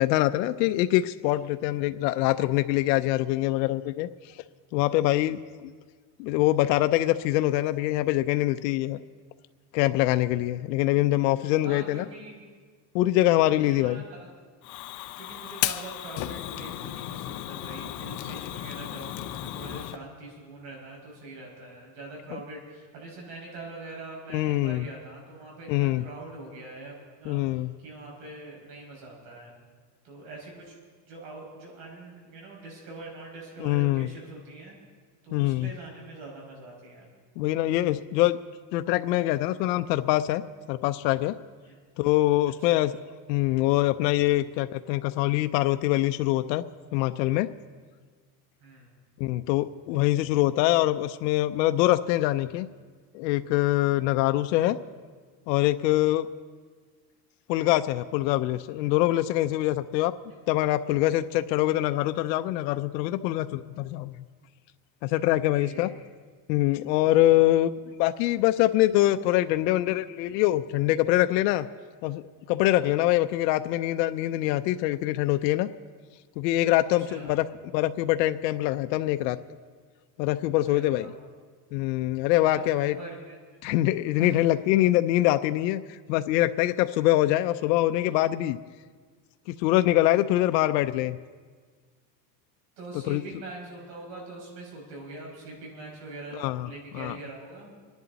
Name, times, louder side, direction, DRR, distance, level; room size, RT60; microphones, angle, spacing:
voice 1, 0.0-4.4 4.7-5.7 6.2-9.0 9.7-12.0 12.9-14.0 22.3-22.4 24.3-24.9 25.7-26.0 27.2-27.7 33.6-34.1 35.3-35.7 37.4-38.4 38.7-40.4 40.7-41.3 42.0-43.0 43.3-46.6 46.9-47.5 49.2-52.7 53.1-54.8 55.5-56.3 57.5-60.1 60.5-64.1 65.0-65.9 66.5-67.7 68.0-71.7 72.0-75.7 76.4-77.4 77.7-79.4 80.2-81.1 81.7-82.9 83.6-88.6 89.5-91.2 93.1-93.2 96.3-97.2, left 15 dB, 85° left, 9 dB, 0.7 m, -24 dB
voice 2, 11.6-12.4 13.3-14.3 15.2-29.5 30.0-30.8 31.1-34.8 35.2-37.1 41.6-41.8 42.7-42.8 48.6-48.9 65.3-66.0 72.8-73.1 77.1-77.4 80.6-81.1 82.4-83.4 84.2-84.5 92.8-97.7, right 2 dB, 70° right, -2 dB, 6.1 m, -43 dB
Fire, 14.6-20.0, left 14 dB, 40° left, 0.6 m, -34 dB
26.0 x 10.5 x 4.1 m, 1.6 s
cardioid pair, 155°, 49 cm